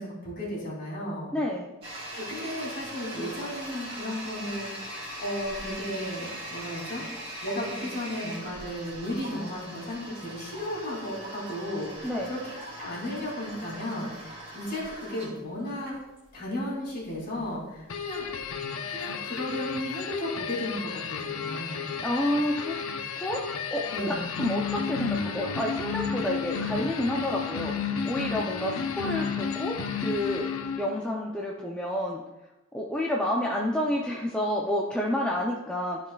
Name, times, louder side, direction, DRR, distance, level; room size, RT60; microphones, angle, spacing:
voice 1, 0.0-1.3 2.1-7.0 7.4-16.0 16.3-18.3 18.9-21.9 23.9-24.3, left 1 dB, 45° left, -4 dB, 2.8 m, -34 dB
voice 2, 1.3-1.7 12.0-12.3 22.0-22.8 23.1-30.5 30.8-32.2 32.7-36.0, left 1 dB, 5° left, -3 dB, 0.5 m, -29 dB
Toilet flush, 1.8-18.5, right 1 dB, 25° right, 2.4 m, -41 dB
sound 1, 17.9-31.1, left 6 dB, 75° left, 0.7 m, -32 dB
13.5 x 4.9 x 2.3 m, 1.0 s
head